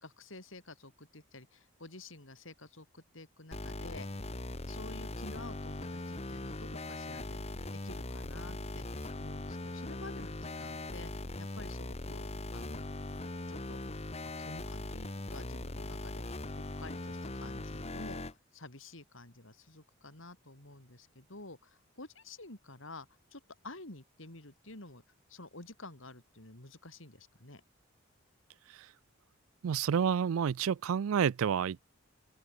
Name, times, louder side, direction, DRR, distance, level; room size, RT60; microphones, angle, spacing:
voice 1, 0.0-4.1 4.6-8.8 9.1-12.9 13.5-13.8 14.4-25.0 25.3-27.6, left 2 dB, 65° left, 4.3 m, -50 dB
sound 1, 3.5-18.3, left 2 dB, 30° left, 1.3 m, -40 dB
Writing, 4.8-9.4 9.9-11.2 11.5-11.9 12.5-15.9, right 2 dB, 10° right, 6.5 m, -72 dB
voice 2, 29.6-31.8, right 7 dB, 75° right, 0.4 m, -29 dB
open air
head